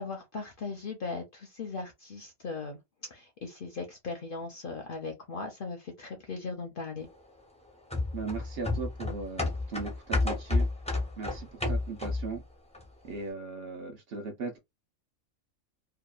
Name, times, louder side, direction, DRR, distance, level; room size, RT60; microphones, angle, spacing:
voice 1, 0.0-2.8 3.1-7.1, left 4 dB, 55° left, 0.6 m, -38 dB
sound 1, 7.9-12.4 12.7-12.8, left 2 dB, 10° left, 0.3 m, -30 dB
voice 2, 8.1-10.7 11.2-12.4 13.0-14.6, right 4 dB, 60° right, 0.7 m, -38 dB
2.8 x 2.2 x 2.3 m
omnidirectional pair, 1.4 m